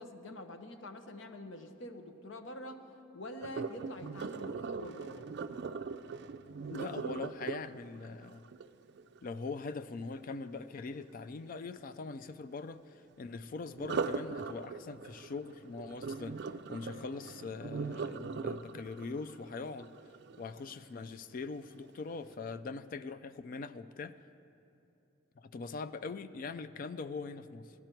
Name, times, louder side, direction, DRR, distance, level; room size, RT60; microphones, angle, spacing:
voice 1, 0.0-2.8 3.1-5.3, left 1 dB, 70° left, 0.9 m, -46 dB
Sink (filling or washing), 3.4-9.4 13.7-20.8 21.3-21.6 22.1-22.2, right 5 dB, 60° right, 0.4 m, -40 dB
voice 2, 6.7-8.4 9.2-19.9 20.4-24.2 25.4-27.7, left 4 dB, 45° left, 0.3 m, -42 dB
16.5 x 11.0 x 4.5 m
head